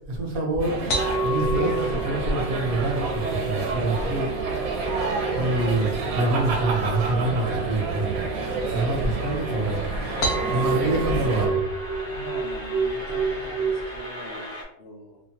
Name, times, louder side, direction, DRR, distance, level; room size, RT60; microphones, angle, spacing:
voice 1, 0.1-0.8 1.2-4.3 5.4-8.1 8.7-9.9 10.5-11.6, right 2 dB, 55° right, 1 dB, 0.6 m, -26 dB
sound 1, 0.6-11.5, right 3 dB, 75° right, 1.0 m, -29 dB
sound 2, 0.9-14.0, right 3 dB, 85° left, 1.1 m, -30 dB
sound 3, 1.7-14.6, equal, 35° left, 0.3 m, -39 dB
voice 2, 10.4-11.0 12.1-15.2, left 2 dB, 65° left, 0 dB, 0.7 m, -42 dB
2.8 x 2.1 x 2.7 m, 0.79 s
omnidirectional pair, 1.5 m